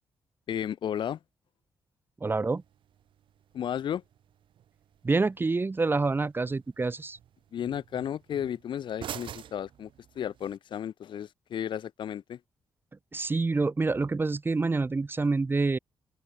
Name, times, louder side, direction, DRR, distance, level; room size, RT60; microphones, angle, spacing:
voice 1, 0.5-1.2 3.5-4.0 7.5-9.9 10.1-12.4, left 9 dB, 70° left, 1.7 m, -33 dB
voice 2, 2.2-2.6 5.0-7.2 13.1-15.8, right 3 dB, 25° right, 1.3 m, -27 dB
sound 1, 2.6-10.6, right 10 dB, 80° right, 4.2 m, -48 dB
open air
cardioid pair, 95°, 8 cm